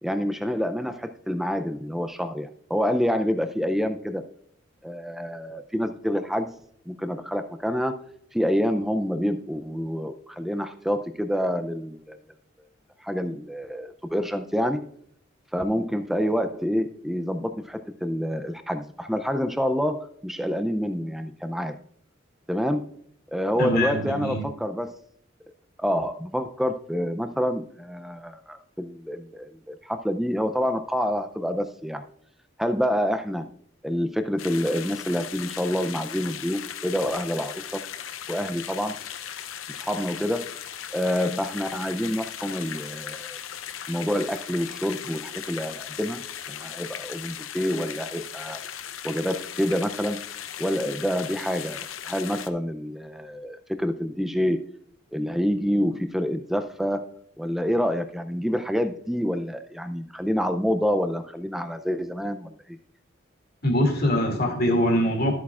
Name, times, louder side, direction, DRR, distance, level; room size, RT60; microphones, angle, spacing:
voice 1, 0.0-4.2 4.8-6.6 6.9-8.0 8.3-12.2 13.0-14.8 15.5-21.8 22.5-22.9 23.3-24.9 25.8-32.0 32.6-33.5 33.8-37.8 38.3-39.0 39.7-40.5 40.9-43.4 43.9-46.2 46.5-50.2 50.6-54.6 55.1-57.1 57.4-62.6, equal, ahead, 8 dB, 0.4 m, -27 dB
voice 2, 23.6-24.4 63.6-65.3, equal, 50° left, 3 dB, 2.2 m, -23 dB
sound 1, 34.4-52.5, left 9 dB, 85° left, 0.6 m, -37 dB
12.5 x 8.4 x 2.4 m, 0.67 s
head